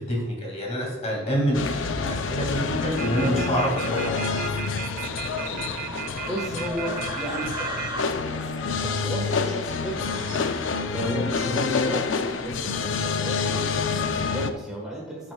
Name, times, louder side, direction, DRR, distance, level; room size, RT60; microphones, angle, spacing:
voice 1, 0.0-4.3, equal, 35° left, -2 dB, 2.3 m, -27 dB
sound 1, 1.5-14.5, left 4 dB, 70° left, 0.5 m, -28 dB
sound 2, 3.0-7.9, right 10 dB, 45° right, 0.4 m, -34 dB
sound 3, 3.3-10.8, right 2 dB, 25° right, 1.0 m, -38 dB
voice 2, 6.3-8.4 8.8-15.3, equal, 5° right, -4 dB, 1.4 m, -34 dB
14.5 x 6.0 x 2.3 m, 1.1 s
head